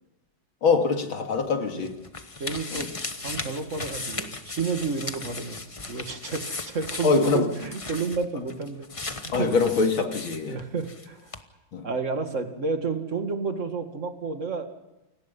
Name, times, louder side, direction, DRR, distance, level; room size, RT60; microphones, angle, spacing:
voice 1, 0.6-2.0 2.7-2.9 7.0-7.5 9.3-10.6 11.7-11.9, left 4 dB, 75° left, 4 dB, 3.1 m, -23 dB
sound 1, 1.4-11.1 11.3-11.4, left 3 dB, 20° left, 0.9 m, -37 dB
voice 2, 2.4-2.9 3.2-5.6 5.9-8.9 9.2-9.5 10.5-11.3 11.8-14.7, right 4 dB, 35° right, 6 dB, 2.3 m, -31 dB
29.0 x 18.5 x 5.6 m, 1.0 s
omnidirectional pair, 2.2 m